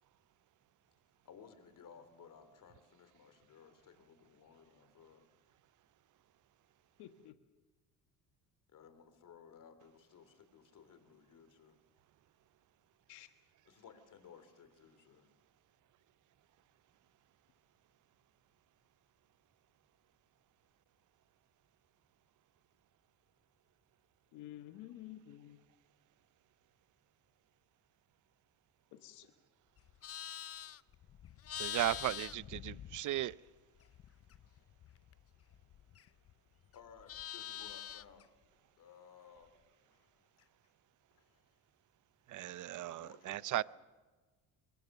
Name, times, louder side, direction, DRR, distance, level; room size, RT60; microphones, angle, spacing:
voice 1, 1.2-5.2 8.7-11.8 13.7-15.3 36.7-38.2 38.8-39.5 41.1-41.6 42.9-43.6, left 7 dB, 55° left, 3.4 m, -59 dB
voice 2, 7.0-7.3 13.1-13.3 24.3-25.7 28.9-29.3, left 13 dB, 80° left, 1.4 m, -51 dB
Livestock farm animals working animals, 29.8-33.5 33.8-36.3 36.6-38.2, left 11 dB, 40° left, 0.6 m, -46 dB
voice 3, 31.5-33.4 42.3-43.6, right 14 dB, 50° right, 0.6 m, -36 dB
24.0 x 22.0 x 6.7 m
supercardioid pair, 90°, 39 cm